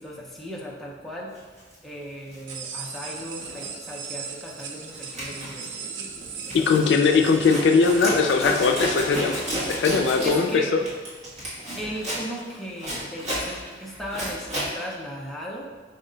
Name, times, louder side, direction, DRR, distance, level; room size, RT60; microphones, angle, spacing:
voice 1, 0.0-1.4 1.8-7.2 10.2-10.7 11.8-15.7, equal, ahead, -4 dB, 0.5 m, -37 dB
Zipper (clothing), 1.6-1.7 2.3-3.7 3.9-4.3 4.6-14.7, equal, 40° right, 1.4 m, -32 dB
sound 1, 2.5-10.3, right 6 dB, 80° right, 0.4 m, -39 dB
voice 2, 6.5-10.8, left 4 dB, 75° left, 5 dB, 0.3 m, -20 dB
5.3 x 2.1 x 3.8 m, 1.4 s
head